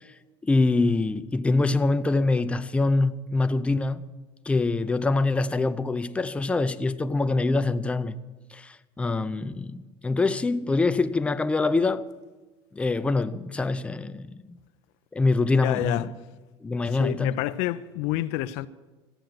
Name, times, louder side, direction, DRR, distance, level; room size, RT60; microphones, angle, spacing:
voice 1, 0.4-4.0 4.5-8.2 8.5-12.0 12.7-14.6 15.1-16.1 16.6-17.3, left 3 dB, 10° left, 0.5 m, -24 dB
voice 2, 15.5-16.1 16.8-18.7, left 15 dB, 70° left, 0.5 m, -29 dB
14.5 x 9.0 x 7.6 m
cardioid pair, 140°, 11 cm